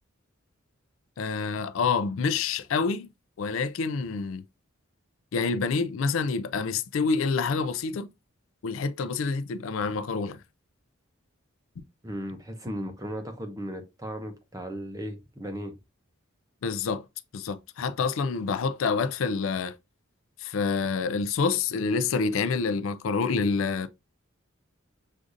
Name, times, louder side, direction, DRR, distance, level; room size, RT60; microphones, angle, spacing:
voice 1, 1.2-3.1 3.4-4.4 5.3-8.1 8.6-10.4 16.6-17.0 17.3-19.8 20.4-23.9, left 4 dB, 75° left, 0.4 m, -27 dB
voice 2, 12.0-15.7, equal, 15° right, 0.6 m, -36 dB
6.3 x 2.5 x 2.5 m
head